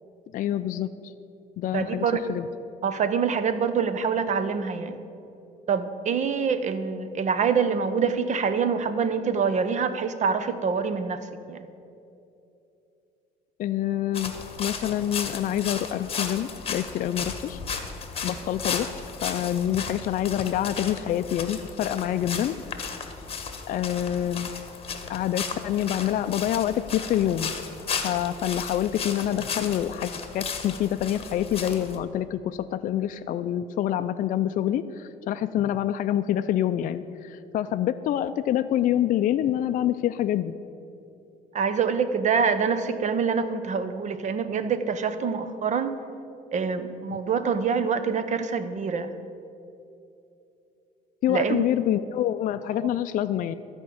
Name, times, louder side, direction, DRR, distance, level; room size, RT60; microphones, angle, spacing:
voice 1, 0.3-1.1 1.6-2.5 13.6-17.6 18.2-22.6 23.7-24.5 25.1-27.5 28.0-40.6 47.1-47.2 51.2-53.5, left 11 dB, 50° left, 9 dB, 0.4 m, -26 dB
voice 2, 1.7-2.3 2.8-4.9 5.7-11.7 41.5-46.0 46.5-49.1 51.3-51.6 52.8-52.9, right 6 dB, 45° right, 11 dB, 0.8 m, -25 dB
sound 1, 14.1-32.0, left 6 dB, 35° left, 1.2 m, -35 dB
13.0 x 5.3 x 8.4 m, 2.7 s
cardioid pair, 110°, 17 cm